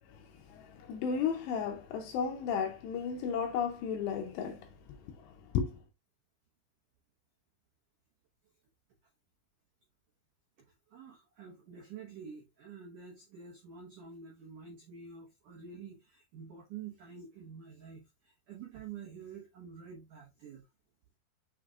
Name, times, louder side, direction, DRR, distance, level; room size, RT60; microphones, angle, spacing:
voice 1, 0.1-5.8, left 7 dB, 85° left, 2.5 m, -34 dB
voice 2, 10.7-20.7, right 6 dB, 80° right, 1.8 m, -48 dB
6.4 x 6.3 x 2.4 m
omnidirectional pair, 5.6 m